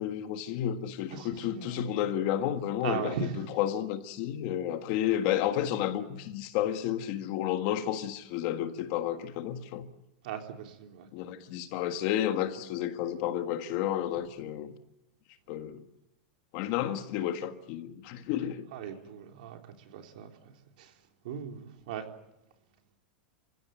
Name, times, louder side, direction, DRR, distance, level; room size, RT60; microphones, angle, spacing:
voice 1, 0.0-9.9 11.1-14.7 15.5-15.8 16.5-18.6, left 11 dB, 40° left, 1.6 m, -31 dB
voice 2, 1.1-1.9 2.8-3.4 10.2-11.1 18.7-20.3 20.8-20.9 21.2-22.1, right 7 dB, 60° right, 3.8 m, -38 dB
29.5 x 16.0 x 9.3 m
supercardioid pair, 175°, 5 cm